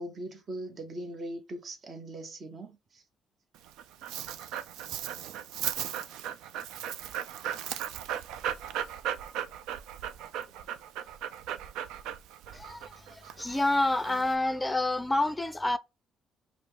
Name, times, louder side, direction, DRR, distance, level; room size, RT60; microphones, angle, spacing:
voice 1, 0.0-3.0, right 1 dB, 45° right, 0.9 m, -40 dB
Dog, 3.5-14.3, right 10 dB, 85° right, 0.3 m, -37 dB
voice 2, 12.5-12.8 13.1-15.8, left 2 dB, 15° left, 0.4 m, -28 dB
5.1 x 2.0 x 3.2 m
cardioid pair, 80°, 0 cm